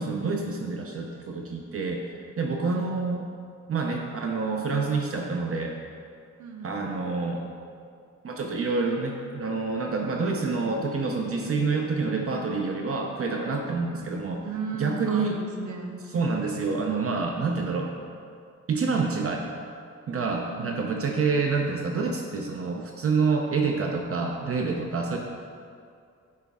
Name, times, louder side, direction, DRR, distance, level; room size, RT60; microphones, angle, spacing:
voice 1, 0.0-3.2 3.7-5.8 6.6-7.4 8.2-14.4 14.7-15.4 16.1-17.9 18.7-19.5 20.1-25.2, right 4 dB, 50° right, 1 dB, 0.6 m, -27 dB
voice 2, 2.6-2.9 6.4-6.9 13.9-14.1 14.4-16.1 20.4-20.8 25.0-25.2, right 4 dB, 85° right, 2 dB, 1.0 m, -36 dB
11.0 x 5.1 x 3.5 m, 2.3 s
wide cardioid pair, 170°, 29 cm